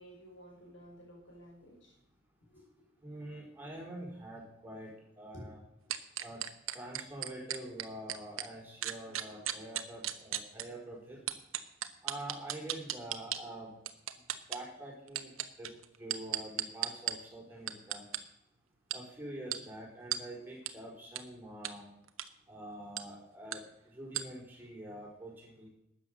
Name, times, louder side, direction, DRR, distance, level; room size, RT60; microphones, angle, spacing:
voice 1, 0.0-2.0 2.4-2.7 5.3-5.5 6.0-6.1 24.9-25.0, equal, 65° left, 0 dB, 5.6 m, -53 dB
voice 2, 3.0-5.6 6.2-6.4 6.7-11.2 12.0-13.7 14.5-15.3 15.6-15.7 16.0-18.0 18.9-21.9 22.5-23.6 23.9-25.7, right 1 dB, 10° right, -3 dB, 4.7 m, -46 dB
sound 1, 5.9-8.5 8.8-10.6 11.3-13.4 13.9-14.6 15.1-17.1 17.7-18.2 18.9-19.0 19.5-19.6 20.1-20.2 20.7-20.8 21.2-21.3 21.6-21.7 22.1-22.3 23.0-23.1 23.5-23.6 24.1-24.2, right 12 dB, 85° right, 1.0 m, -35 dB
13.0 x 9.6 x 6.6 m, 0.81 s
head